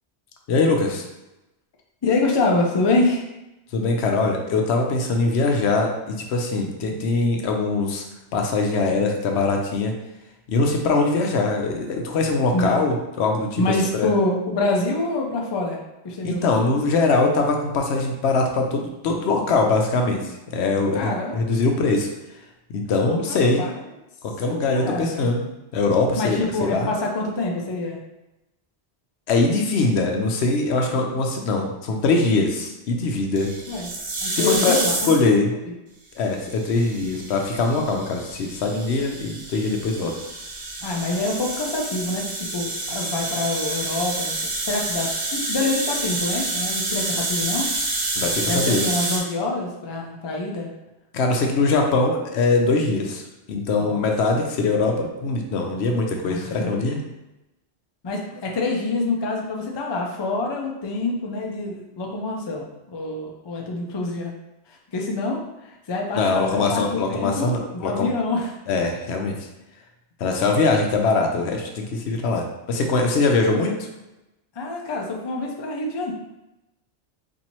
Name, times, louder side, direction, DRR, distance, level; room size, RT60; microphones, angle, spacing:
voice 1, 0.5-1.0 3.7-8.0 8.3-10.0 10.5-13.6 13.9-14.1 16.2-22.1 22.7-23.6 24.2-25.4 25.7-26.9 29.3-33.5 34.3-34.8 35.1-35.5 36.2-40.1 48.2-48.8 51.1-57.0 66.1-68.1 68.7-69.5 70.2-73.9, left 3 dB, 75° left, 2 dB, 0.9 m, -22 dB
voice 2, 2.0-3.2 12.5-12.8 13.6-15.8 16.0-16.5 20.9-21.4 23.3-23.8 24.7-25.3 26.1-28.0 33.7-33.9 34.2-35.1 40.8-47.7 48.5-50.7 53.8-54.0 56.3-56.7 58.0-64.3 64.7-68.5 74.6-76.1, left 2 dB, 40° left, 0 dB, 0.4 m, -26 dB
sound 1, 33.4-35.3 36.4-49.2, right 2 dB, 55° right, 1.0 m, -28 dB
4.2 x 2.6 x 2.9 m, 0.96 s
omnidirectional pair, 1.1 m